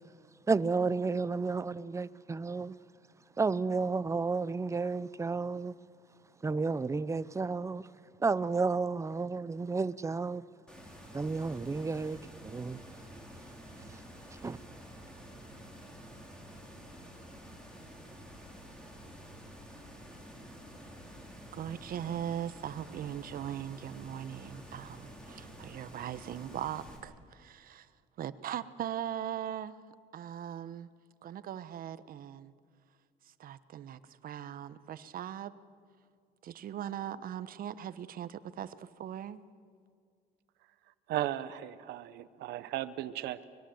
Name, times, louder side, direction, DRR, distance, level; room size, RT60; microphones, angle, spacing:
voice 1, 0.5-2.7 3.4-5.7 6.4-7.9 8.2-10.4 11.1-12.8 14.4-14.6, right 4 dB, 15° right, 0.7 m, -31 dB
sound 1, 10.7-27.0, equal, 5° left, 5.6 m, -50 dB
voice 2, 21.5-27.9 28.2-29.7 30.1-30.9 31.2-32.5 33.4-35.5 36.4-39.4, right 10 dB, 60° right, 1.1 m, -40 dB
voice 3, 41.1-43.4, right 13 dB, 80° right, 1.0 m, -36 dB
24.5 x 21.0 x 7.9 m
cardioid pair, 110°, 17 cm